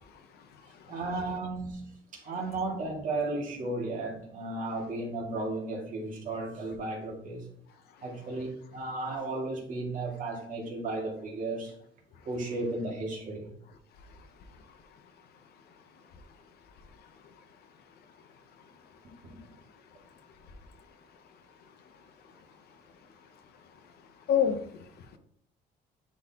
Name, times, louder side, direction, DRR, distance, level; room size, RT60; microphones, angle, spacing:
voice 1, 0.0-1.0 2.2-2.3 7.9-8.1 12.1-12.3 13.9-25.2, left 8 dB, 70° left, 0.8 m, -39 dB
voice 2, 0.9-7.5 8.0-11.7 12.3-13.5 19.3-19.4, right 2 dB, 50° right, 2.2 m, -34 dB
9.9 x 4.0 x 2.9 m
cardioid pair, 110°, 17 cm